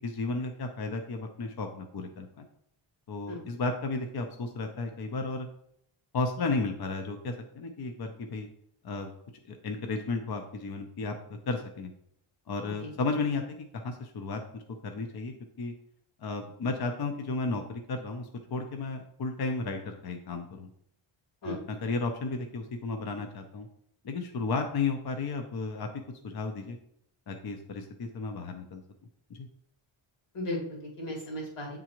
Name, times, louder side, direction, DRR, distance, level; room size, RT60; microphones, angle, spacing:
voice 1, 0.0-2.4 3.1-5.5 6.1-8.5 8.8-9.1 9.5-11.1 11.5-11.9 12.5-15.7 16.2-20.7 21.4-23.7 24.0-25.9 26.2-26.8 27.3-28.8 29.3-29.5, left 3 dB, 50° left, 5 dB, 0.6 m, -33 dB
voice 2, 30.3-31.8, left 1 dB, 90° left, -3 dB, 2.3 m, -36 dB
9.1 x 3.7 x 3.0 m, 0.71 s
wide cardioid pair, 145°, 50 cm